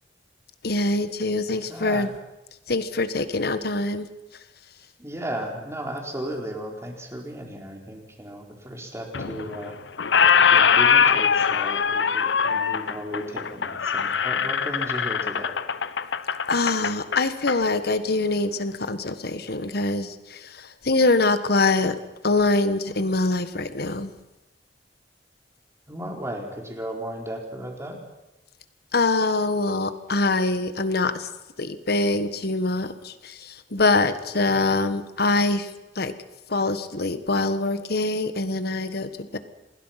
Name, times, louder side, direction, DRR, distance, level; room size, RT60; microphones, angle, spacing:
voice 1, 0.6-2.1 2.7-4.1 16.5-22.0 22.2-24.1 28.9-31.3 31.6-36.1 36.5-39.4, left 2 dB, 60° left, 11 dB, 1.5 m, -24 dB
voice 2, 1.7-2.1 5.0-9.7 10.5-15.5 25.9-28.0, right 1 dB, 15° right, 1 dB, 4.2 m, -35 dB
Squeak, 9.1-9.7 10.0-17.6, left 6 dB, 80° left, 0.8 m, -22 dB
27.5 x 20.5 x 5.9 m, 0.97 s
head